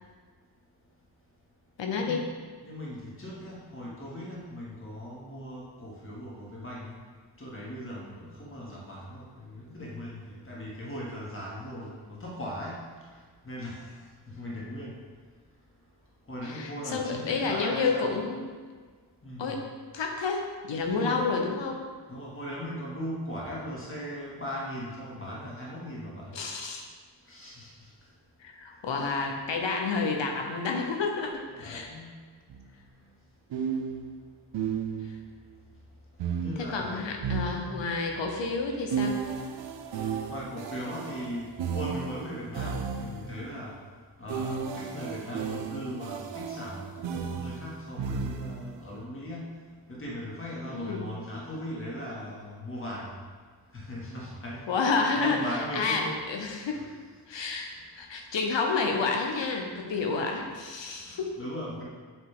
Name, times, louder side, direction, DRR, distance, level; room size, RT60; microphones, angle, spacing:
voice 1, 1.8-2.3 16.4-18.4 19.4-19.6 19.9-21.8 26.3-26.8 28.4-31.9 35.0-35.2 36.6-39.2 50.7-51.0 54.7-56.9 57.3-57.7 57.9-61.3, left 4 dB, 85° left, 2 dB, 1.0 m, -30 dB
voice 2, 2.6-7.0 7.4-12.8 13.4-14.0 14.3-15.0 16.3-18.2 19.2-19.6 20.8-21.2 22.1-26.3 27.3-27.9 29.0-29.3 31.5-32.1 36.4-37.1 37.5-37.8 40.3-43.8 44.2-49.5 49.9-53.1 53.7-56.2 56.6-56.9 60.9-61.8, equal, 30° left, -4 dB, 1.7 m, -38 dB
sound 1, 32.5-32.6 33.5-35.3 36.2-38.1 38.9-43.4 44.3-48.8, right 6 dB, 80° right, 0.6 m, -34 dB
7.7 x 3.0 x 4.9 m, 1.6 s
cardioid pair, 65°, 43 cm